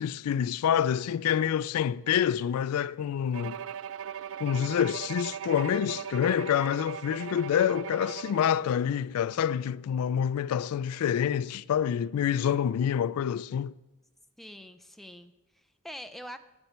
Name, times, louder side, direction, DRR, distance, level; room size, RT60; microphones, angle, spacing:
voice 1, 0.0-3.6 4.4-13.7, left 8 dB, 75° left, 0.3 m, -27 dB
Bowed string instrument, 3.3-8.7, right 9 dB, 60° right, 0.3 m, -39 dB
voice 2, 14.4-16.4, equal, ahead, 0.5 m, -45 dB
9.3 x 7.2 x 8.0 m
head